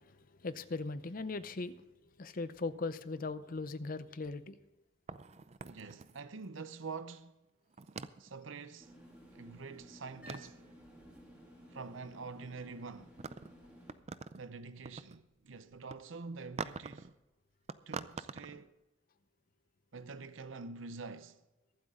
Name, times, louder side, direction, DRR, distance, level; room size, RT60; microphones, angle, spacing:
voice 1, 0.4-1.8 2.2-4.6, left 3 dB, 45° left, 0.6 m, -39 dB
sound 1, 5.1-6.6 7.7-8.3 9.8-9.9 10.2-10.7 12.4-12.6 13.0-14.4 14.7-15.2 15.7-15.9 16.6-17.1 17.7-18.6, right 5 dB, 35° right, 0.5 m, -44 dB
voice 2, 5.6-7.4 8.2-9.0 9.3-10.6 11.7-13.2 14.3-17.1 17.9-18.7 19.9-21.4, right 4 dB, 75° right, 0.7 m, -46 dB
sound 2, 8.8-13.9, equal, 5° right, 3.2 m, -55 dB
23.0 x 8.1 x 3.7 m
head